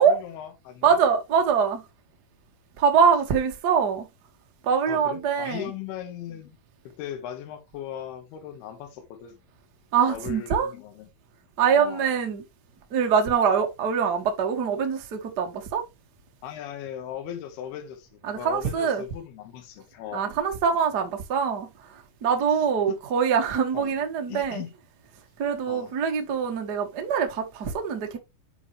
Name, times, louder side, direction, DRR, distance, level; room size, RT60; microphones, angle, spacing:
voice 1, 0.0-1.0 4.9-6.6 6.8-9.4 10.1-11.1 11.8-12.1 16.4-20.4 22.9-23.0 23.7-23.9 24.3-24.7 25.7-25.9, left 10 dB, 80° left, 3.3 m, -38 dB
voice 2, 0.8-1.8 2.8-4.1 4.6-5.7 9.9-10.7 11.6-12.4 12.9-15.8 18.2-19.0 20.1-24.6 25.4-28.2, right 6 dB, 85° right, 0.9 m, -24 dB
9.2 x 5.5 x 3.2 m
omnidirectional pair, 4.5 m